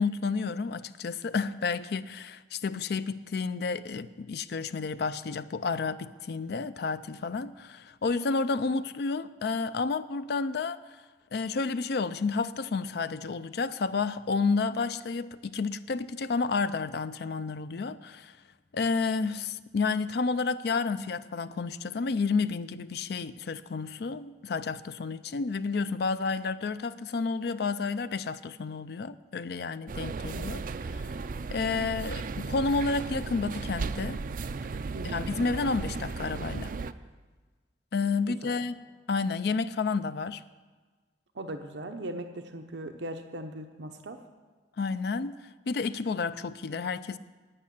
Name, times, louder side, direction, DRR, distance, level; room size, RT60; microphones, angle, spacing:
voice 1, 0.0-10.8 11.3-18.4 18.7-30.6 30.9-31.1 31.5-34.2 35.1-36.7 37.9-38.8 39.1-40.4 44.8-47.2, left 4 dB, 65° left, 0.4 m, -30 dB
sound 1, 29.9-36.9, right 4 dB, 50° right, 0.4 m, -35 dB
voice 2, 34.9-35.3 38.4-38.6 41.3-44.2, right 1 dB, 80° right, 0.8 m, -39 dB
9.4 x 8.7 x 9.9 m
head